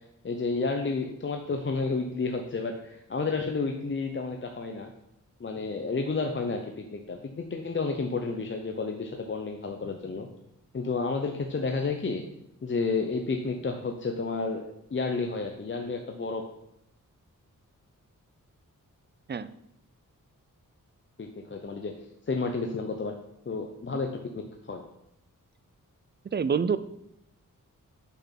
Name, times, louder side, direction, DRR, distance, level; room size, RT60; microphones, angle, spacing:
voice 1, 0.2-4.9 5.4-10.3 10.7-12.2 12.6-16.4 21.2-21.9 22.3-23.1 23.5-24.1 24.3-24.8, left 4 dB, 35° left, 3 dB, 0.7 m, -31 dB
voice 2, 26.3-26.8, right 6 dB, 30° right, 14 dB, 0.4 m, -26 dB
7.0 x 6.0 x 5.7 m, 0.79 s
wide cardioid pair, 130°, 33 cm